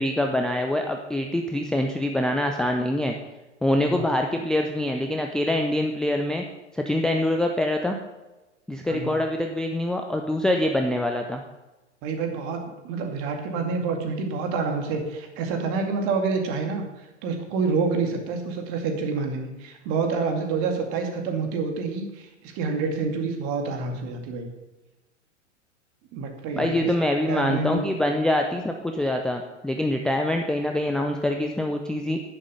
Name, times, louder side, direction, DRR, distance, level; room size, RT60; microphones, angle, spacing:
voice 1, 0.0-3.1 3.6-6.4 6.7-8.0 8.7-11.4 26.6-32.2, left 1 dB, ahead, 3 dB, 0.5 m, -25 dB
voice 2, 12.0-24.5 26.1-26.9 27.3-27.9, right 4 dB, 35° right, 4 dB, 2.3 m, -28 dB
10.5 x 10.0 x 5.4 m, 1.1 s
figure-of-eight pair, 95°, 37 cm